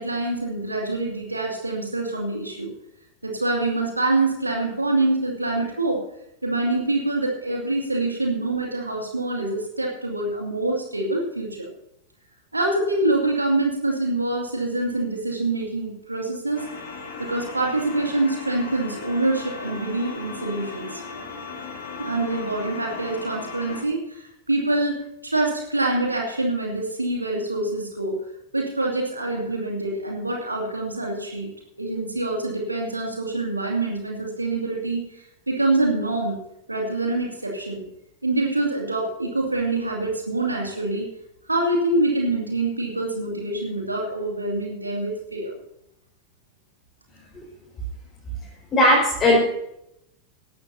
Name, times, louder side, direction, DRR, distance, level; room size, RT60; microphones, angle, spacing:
voice 1, 0.0-2.7 3.2-6.0 6.4-11.7 12.5-16.6 17.2-21.0 22.0-28.2 28.5-31.5 31.8-36.4 36.7-37.9 38.2-41.1 41.5-45.5, right 2 dB, 85° right, 0 dB, 2.5 m, -25 dB
sound 1, 16.5-23.8, left 4 dB, 55° left, 3.6 m, -37 dB
voice 2, 48.7-49.4, left 1 dB, 25° left, -5 dB, 5.2 m, -17 dB
17.5 x 13.0 x 2.8 m, 0.80 s
figure-of-eight pair, 90°, 0 cm